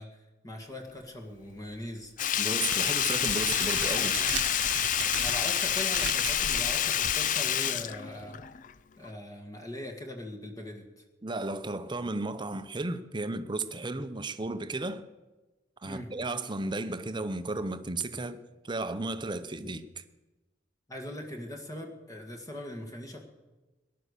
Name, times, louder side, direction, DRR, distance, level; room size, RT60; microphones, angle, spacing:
voice 1, 0.0-2.1 5.0-8.4 9.0-11.0 13.8-14.0 15.9-16.1 20.9-23.2, left 1 dB, 20° left, 1.9 m, -41 dB
Sink (filling or washing), 2.2-8.7 9.0-9.1, left 10 dB, 45° left, 0.5 m, -28 dB
voice 2, 2.4-4.2 11.2-15.0 15.8-20.0, right 2 dB, 25° right, 0.8 m, -34 dB
Crackle, 2.5-7.6, right 8 dB, 85° right, 0.6 m, -37 dB
18.5 x 11.5 x 6.7 m
head